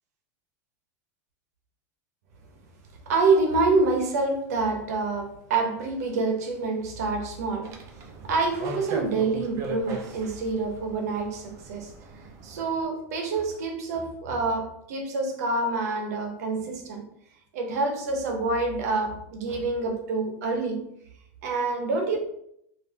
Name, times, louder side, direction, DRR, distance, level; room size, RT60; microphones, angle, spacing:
voice 1, 3.1-17.1 17.5-20.8 21.4-22.2, right 3 dB, 80° right, 3 dB, 0.9 m, -27 dB
sound 1, 7.6-12.8, right 3 dB, 35° right, 0.5 m, -39 dB
3.5 x 2.6 x 2.8 m, 0.74 s
supercardioid pair, 150°, 9 cm